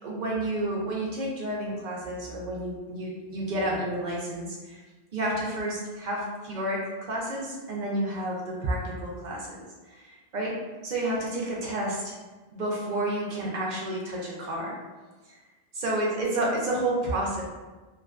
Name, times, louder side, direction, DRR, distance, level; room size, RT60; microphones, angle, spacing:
voice 1, 0.0-4.8 5.1-9.6 9.9-10.6 10.8-12.1 12.5-14.8 15.8-17.4, right 1 dB, 55° right, -3 dB, 0.6 m, -30 dB
2.4 x 2.2 x 2.3 m, 1.2 s
omnidirectional pair, 1.1 m